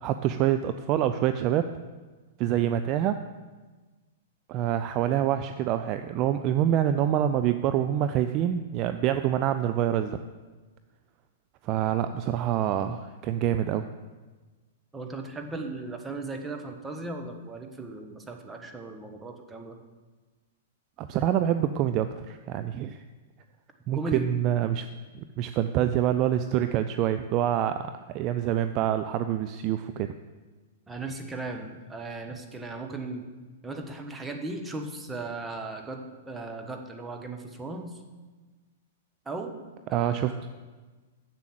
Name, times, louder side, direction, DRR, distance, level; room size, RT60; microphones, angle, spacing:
voice 1, 0.0-1.7 2.4-3.2 4.5-10.2 11.6-13.9 21.0-23.0 23.9-24.9 25.1-30.1 39.9-40.3, right 11 dB, 35° right, 10 dB, 0.4 m, -26 dB
voice 2, 14.9-19.8 23.9-24.3 30.9-33.3 33.6-38.0 39.2-39.6 39.9-40.4, right 2 dB, 10° right, 3 dB, 1.2 m, -37 dB
7.6 x 7.1 x 7.5 m, 1.3 s
figure-of-eight pair, 105°, 0 cm